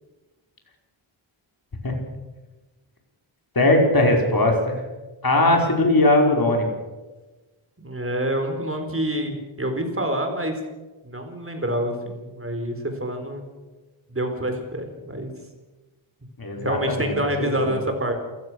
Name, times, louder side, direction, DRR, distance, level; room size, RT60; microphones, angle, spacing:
voice 1, 3.5-4.8 5.2-6.6 16.4-17.7, left 1 dB, 45° left, 1 dB, 5.1 m, -20 dB
voice 2, 7.8-10.6 11.0-13.4 14.1-15.3 16.5-18.1, right 1 dB, 25° right, 5 dB, 4.4 m, -27 dB
28.5 x 16.0 x 6.4 m, 1.2 s
wide cardioid pair, 100°, 49 cm